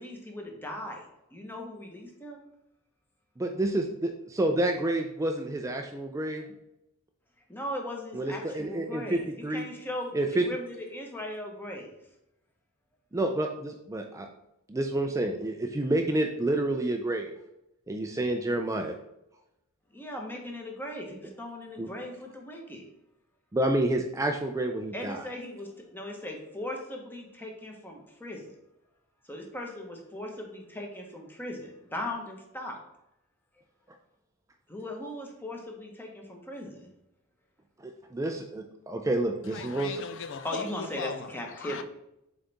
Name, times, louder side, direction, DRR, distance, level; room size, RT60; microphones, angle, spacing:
voice 1, 0.0-2.4 7.5-11.9 19.9-22.8 24.9-28.4 29.3-32.8 34.7-36.9 40.4-41.8, left 1 dB, 10° left, 1.1 m, -38 dB
voice 2, 3.4-6.4 8.1-9.6 10.1-10.5 13.1-14.3 14.7-17.3 17.9-19.0 21.8-21.9 23.5-25.2 37.8-40.0, right 1 dB, 15° right, 0.4 m, -29 dB
voice 3, 39.5-41.3 41.6-41.8, left 5 dB, 60° left, 0.4 m, -38 dB
7.4 x 4.0 x 3.5 m
head